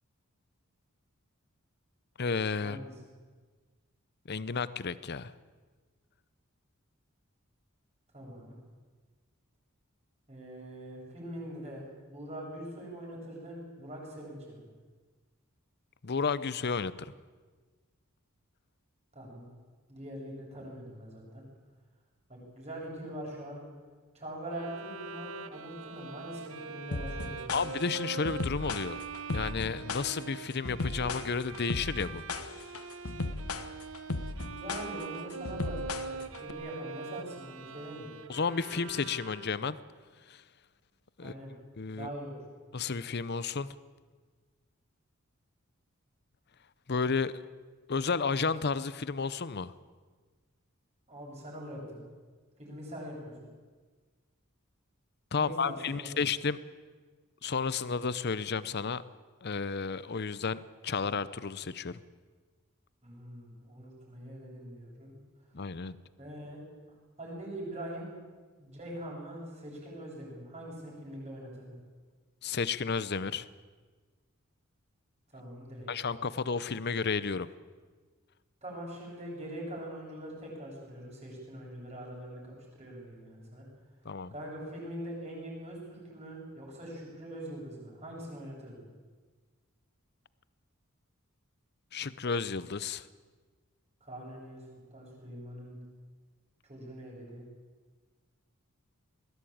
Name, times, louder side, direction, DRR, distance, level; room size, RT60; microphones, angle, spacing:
voice 1, 2.2-2.8 4.3-5.3 16.0-17.1 27.5-29.0 29.3-32.2 38.3-39.8 40.3-40.4 41.2-41.3 41.8-42.1 42.7-43.8 46.9-47.3 47.9-49.7 55.3-56.6 57.4-59.0 59.4-62.0 65.5-66.0 72.4-73.5 75.9-77.5 84.0-84.3 91.9-93.1, left 5 dB, 50° left, 16 dB, 0.7 m, -32 dB
voice 2, 8.1-8.6 10.3-14.6 19.1-19.5 19.9-21.4 22.3-23.6 24.1-27.7 34.4-38.1 41.2-41.5 41.9-42.4 51.1-52.0 52.6-53.3 55.4-56.1 63.0-65.1 66.2-66.6 67.2-68.1 68.6-71.7 75.3-75.9 78.6-82.5 82.7-83.6 84.3-88.8 94.0-95.8 96.7-97.4, right 1 dB, 30° right, -3 dB, 7.9 m, -43 dB
Bowed string instrument, 24.5-39.8, right 4 dB, 65° right, 1.1 m, -43 dB
sound 1, 26.9-36.5, left 3 dB, 90° left, 1.2 m, -36 dB
21.0 x 16.5 x 8.8 m, 1.4 s
head